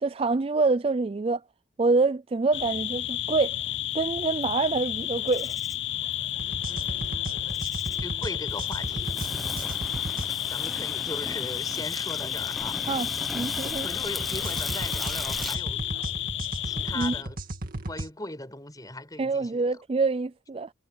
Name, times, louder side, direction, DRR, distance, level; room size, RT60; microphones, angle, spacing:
voice 1, 0.0-1.4 1.8-3.6 3.9-5.5 12.9-13.1 13.3-13.9 16.9-17.2 19.2-20.7, right 3 dB, 30° right, 0.4 m, -26 dB
sound 1, 2.5-17.2, left 13 dB, 75° left, 0.6 m, -31 dB
Insect, 4.9-15.6, equal, ahead, 1.2 m, -38 dB
sound 2, 6.4-10.3 14.2-18.1, right 1 dB, 50° right, 2.2 m, -36 dB
voice 2, 6.7-7.1 8.0-9.2 10.5-12.8 13.6-15.8 16.6-17.4 17.9-19.8, left 2 dB, 20° left, 6.8 m, -39 dB
head